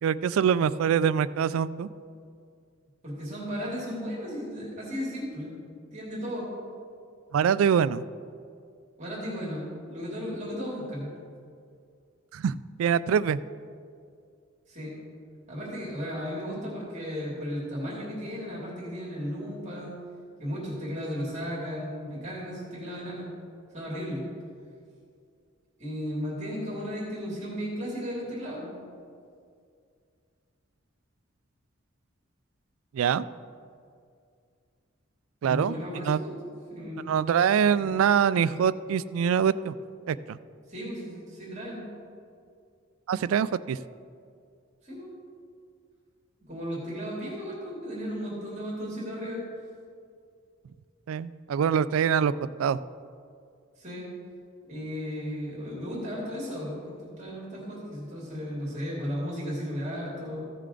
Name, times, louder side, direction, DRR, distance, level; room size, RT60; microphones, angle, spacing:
voice 1, 0.0-1.9 7.3-8.0 12.3-13.4 32.9-33.2 35.4-35.7 36.1-36.2 37.1-39.7 40.1-40.4 43.1-43.8 51.1-52.3 52.6-52.8, right 7 dB, 90° right, 17 dB, 0.3 m, -24 dB
voice 2, 3.0-5.5 5.9-6.5 9.0-11.1 14.7-14.9 15.5-19.9 20.4-23.3 23.7-24.2 25.8-28.7 35.4-36.3 36.7-37.1 37.7-37.9 40.7-41.8 44.8-45.1 46.5-49.4 53.8-54.1 54.6-60.4, equal, 35° right, -6 dB, 2.8 m, -35 dB
15.0 x 6.7 x 3.8 m, 2.3 s
head